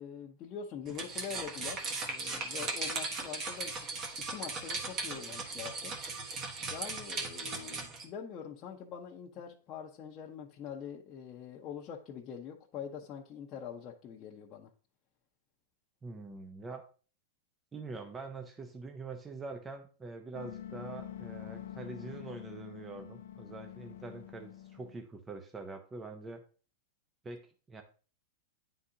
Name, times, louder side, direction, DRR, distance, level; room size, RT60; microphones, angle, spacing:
voice 1, 0.0-5.9 6.7-14.7, left 7 dB, 30° left, -1 dB, 0.7 m, -44 dB
sound 1, 0.9-8.0, right 3 dB, 30° right, 1.3 m, -38 dB
voice 2, 16.0-16.8 17.7-26.4 27.2-27.4 27.7-27.8, right 3 dB, 15° right, 5 dB, 0.6 m, -44 dB
sound 2, 20.3-25.0, left 11 dB, 75° left, 0.4 m, -46 dB
9.5 x 3.8 x 2.8 m, 0.39 s
hypercardioid pair, 135°, 0 cm